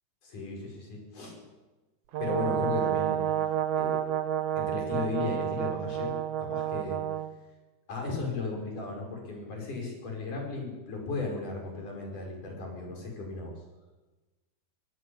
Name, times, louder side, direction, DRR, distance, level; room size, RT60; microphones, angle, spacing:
voice 1, 0.2-1.4 2.2-3.2 3.7-4.0 4.6-7.0 7.9-13.6, left 3 dB, 75° left, 1 dB, 7.3 m, -35 dB
Brass instrument, 2.1-7.3, right 11 dB, 75° right, 2.4 m, -30 dB
24.0 x 14.5 x 8.8 m, 1.2 s
omnidirectional pair, 3.7 m